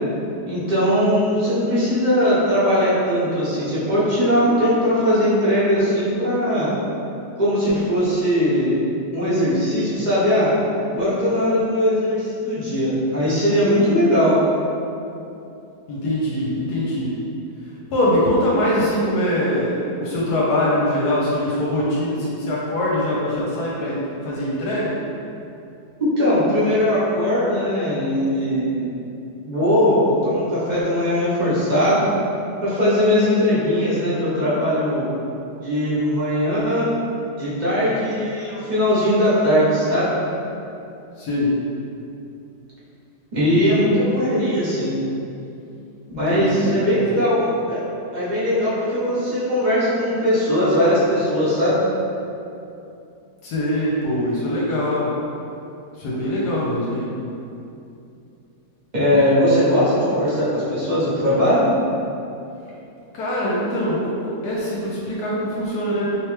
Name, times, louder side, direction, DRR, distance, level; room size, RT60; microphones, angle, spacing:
voice 1, 0.4-6.7 7.4-8.8 9.1-10.5 10.9-14.3 26.0-28.9 29.4-32.1 32.6-35.1 35.6-36.9 37.4-40.2 43.3-45.0 46.2-47.8 48.1-51.8 58.9-61.7, equal, 35° right, -10 dB, 0.8 m, -19 dB
voice 2, 15.9-17.1 17.6-25.0 41.2-41.5 46.1-47.2 53.4-55.1 55.9-57.1 63.1-66.2, left 1 dB, 75° left, -6 dB, 1.1 m, -23 dB
3.2 x 3.1 x 3.1 m, 2.7 s
omnidirectional pair, 1.9 m